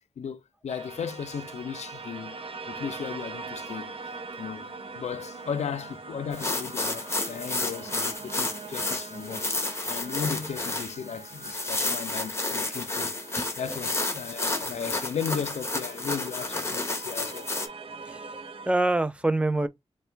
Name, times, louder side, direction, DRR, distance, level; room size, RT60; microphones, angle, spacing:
voice 1, 0.2-2.4 2.7-3.9 4.4-9.5 9.8-13.2 13.6-17.5, left 7 dB, 85° left, 0.5 m, -35 dB
sound 1, 0.7-18.7, right 4 dB, 55° right, 0.6 m, -43 dB
sound 2, 6.3-17.7, left 2 dB, 25° left, 0.8 m, -31 dB
voice 2, 13.4-13.8 18.1-18.3 18.7-19.7, right 2 dB, 10° right, 0.4 m, -26 dB
3.4 x 2.1 x 4.3 m
wide cardioid pair, 120°, 11 cm